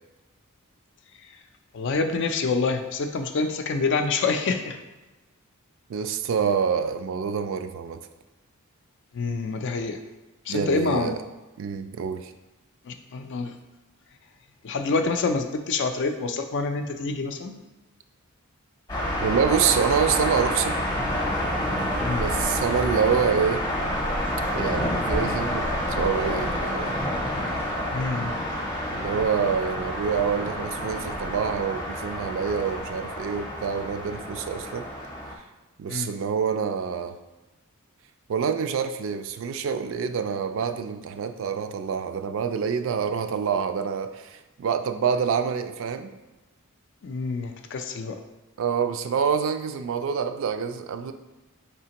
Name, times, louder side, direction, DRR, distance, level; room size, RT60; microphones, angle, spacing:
voice 1, 1.7-4.8 9.1-10.0 10.5-11.2 12.9-13.5 14.6-17.6 22.0-22.3 27.9-28.4 35.9-36.1 47.0-48.2, left 4 dB, 55° left, 7 dB, 0.4 m, -27 dB
voice 2, 5.9-8.0 10.5-11.2 11.6-12.3 19.2-20.7 22.1-23.6 24.5-27.0 28.9-34.9 35.8-37.2 38.3-46.1 48.6-51.1, right 6 dB, 60° right, 9 dB, 0.3 m, -26 dB
sound 1, 18.9-35.4, equal, 20° left, 0.7 m, -28 dB
4.9 x 3.3 x 2.9 m, 1.1 s
head